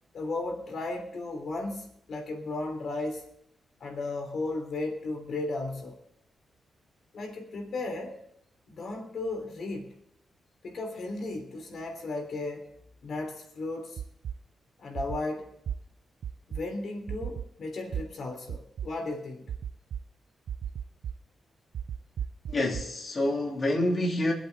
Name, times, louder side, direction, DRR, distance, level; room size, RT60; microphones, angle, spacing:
voice 1, 0.1-3.2 3.8-6.0 7.1-8.1 8.7-10.0 10.6-12.7 13.0-14.0 14.8-15.5 16.5-19.5, left 2 dB, 65° left, 3.1 m, -35 dB
sound 1, 14.0-14.3 15.0-15.2 15.7-15.8 16.2-16.6 17.1-17.5 17.9-18.0 18.5-18.9 19.5-20.0 20.5-21.1 21.7-22.8, right 9 dB, 70° right, 0.5 m, -34 dB
voice 2, 22.5-24.3, left 1 dB, 35° left, 3.1 m, -27 dB
25.0 x 8.4 x 4.1 m
wide cardioid pair, 125°, 0 cm